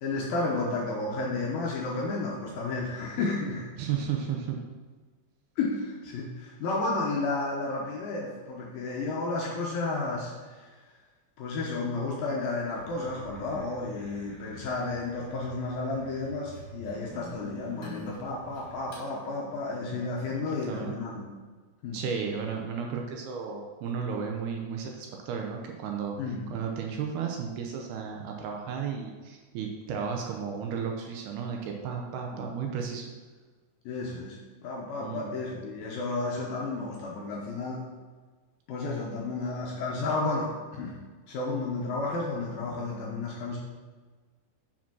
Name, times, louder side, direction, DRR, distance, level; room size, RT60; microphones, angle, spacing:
voice 1, 0.0-3.7 5.6-10.8 11.4-21.3 21.8-22.0 26.2-26.5 32.3-32.5 33.9-37.9 38.7-41.0 41.3-43.6, left 3 dB, 75° left, -2 dB, 2.3 m, -32 dB
voice 2, 3.8-4.6 20.3-20.4 20.7-20.9 21.9-26.2 26.5-33.1 35.0-35.3, right 6 dB, 80° right, 2 dB, 2.5 m, -33 dB
sound 1, 12.8-19.1, left 1 dB, 40° left, 2.8 m, -46 dB
7.0 x 5.0 x 6.0 m, 1.4 s
omnidirectional pair, 5.1 m